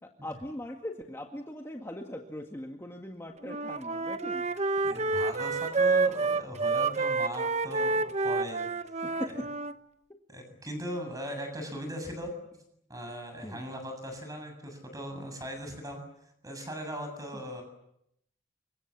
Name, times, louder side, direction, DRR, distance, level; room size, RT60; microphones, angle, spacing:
voice 1, 0.0-4.5 9.0-9.5 10.1-10.2 13.4-13.7 17.3-17.4, left 1 dB, 15° left, 2 dB, 2.0 m, -40 dB
Wind instrument woodwind instrument, 3.4-9.7, right 3 dB, 35° right, 1.0 m, -29 dB
voice 2, 4.8-8.7 9.3-9.4 10.3-12.3 12.9-16.0 16.4-17.6, equal, 20° right, 5 dB, 7.5 m, -39 dB
29.0 x 25.5 x 7.3 m, 0.79 s
head